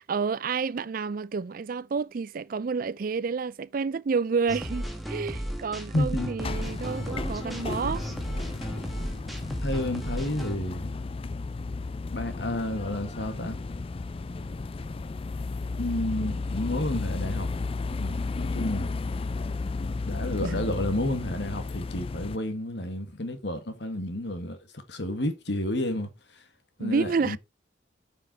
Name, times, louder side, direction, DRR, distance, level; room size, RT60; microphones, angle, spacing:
voice 1, 0.0-8.1 20.4-20.7 26.8-27.4, right 5 dB, 45° right, 0.4 m, -29 dB
sound 1, 4.5-10.6, equal, ahead, 1.6 m, -34 dB
voice 2, 5.9-6.3 9.6-10.9 12.1-13.6 15.8-17.5 18.0-18.9 20.1-24.6 24.9-26.5 26.8-27.4, left 1 dB, 65° left, 1.9 m, -31 dB
sound 2, 6.4-22.4, left 3 dB, 30° left, 0.4 m, -33 dB
8.8 x 5.6 x 4.3 m
head